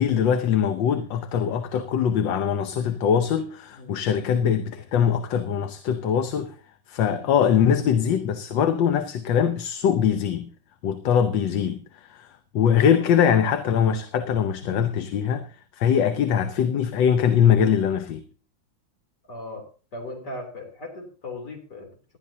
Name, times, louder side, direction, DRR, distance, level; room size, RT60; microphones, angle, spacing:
voice 1, 0.0-6.5 6.9-10.5 10.8-12.3 12.5-15.5 15.8-18.2, left 8 dB, 75° left, 1.5 m, -22 dB
voice 2, 12.7-13.0 14.6-14.8 19.3-19.7 19.9-22.2, left 2 dB, 60° left, 3.9 m, -38 dB
19.5 x 12.0 x 2.8 m
omnidirectional pair, 2.1 m